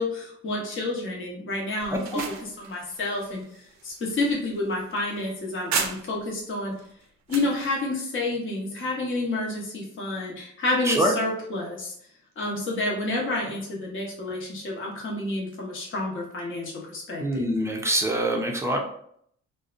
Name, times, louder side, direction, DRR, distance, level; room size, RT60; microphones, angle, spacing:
voice 1, 0.0-6.7 7.3-11.9 12.4-17.5, left 2 dB, 40° left, -3 dB, 0.8 m, -29 dB
sound 1, 1.8-6.4 6.8-7.6, right 6 dB, 65° right, 0.5 m, -35 dB
voice 2, 17.2-18.8, right 1 dB, 10° right, 0 dB, 0.5 m, -24 dB
2.6 x 2.1 x 2.4 m, 0.67 s
cardioid pair, 90°, 30 cm